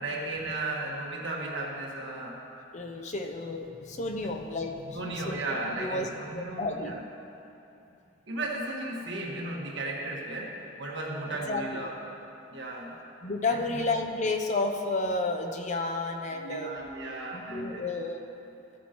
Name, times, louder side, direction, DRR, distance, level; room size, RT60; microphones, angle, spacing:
voice 1, 0.0-2.4 4.9-7.1 7.9-8.0 8.3-12.0 12.5-13.0 13.5-13.8 16.4-17.8, right 2 dB, 60° right, -3 dB, 1.5 m, -35 dB
voice 2, 2.7-6.1 6.3-6.9 11.5-11.8 13.2-16.7 17.3-18.3, left 2 dB, 35° left, 4 dB, 0.5 m, -31 dB
14.0 x 8.4 x 3.0 m, 2.8 s
head